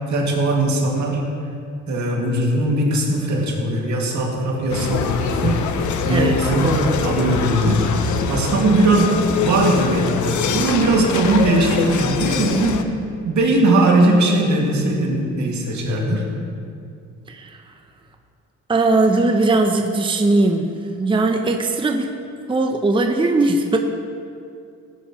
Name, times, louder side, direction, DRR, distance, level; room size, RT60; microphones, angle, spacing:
voice 1, 0.1-1.2 1.9-5.7 6.1-10.2 10.5-12.9 13.2-16.2, right 2 dB, 70° right, -1 dB, 2.4 m, -19 dB
sound 1, 4.7-12.8, left 5 dB, 75° left, 0.8 m, -23 dB
voice 2, 6.1-7.0 17.3-17.6 18.7-22.2 22.5-23.8, right 2 dB, 15° right, 4 dB, 0.7 m, -19 dB
16.5 x 9.2 x 3.1 m, 2.4 s
cardioid pair, 90°, 30 cm